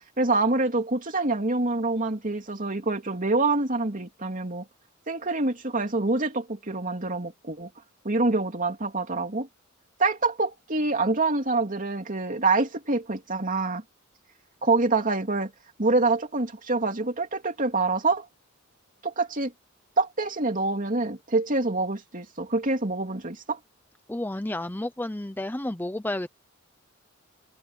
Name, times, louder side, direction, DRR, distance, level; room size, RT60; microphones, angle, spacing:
voice 1, 0.2-4.6 5.1-7.7 8.0-9.5 10.0-13.8 14.6-15.5 15.8-18.3 19.0-19.5 20.0-23.6, right 3 dB, 40° right, 3.0 m, -26 dB
voice 2, 24.1-26.3, left 1 dB, 10° left, 0.7 m, -31 dB
head